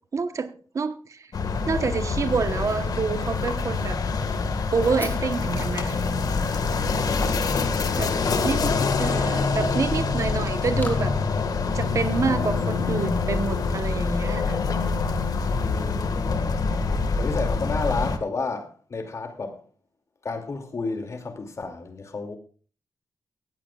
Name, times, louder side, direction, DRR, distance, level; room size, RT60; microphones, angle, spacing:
voice 1, 0.1-1.2 1.7-4.0 4.7-6.0 8.0-8.1 8.4-8.7 9.0-11.1 11.7-14.6, right 5 dB, 50° right, 1.0 m, -27 dB
sound 1, 1.3-18.2, left 4 dB, 65° left, 1.7 m, -25 dB
Fire, 3.2-10.9, left 2 dB, 25° left, 3.6 m, -43 dB
voice 2, 8.2-8.6 15.5-16.1 17.2-19.6 20.2-22.4, left 4 dB, 45° left, 2.5 m, -31 dB
18.5 x 15.0 x 2.4 m
wide cardioid pair, 170°, 7 cm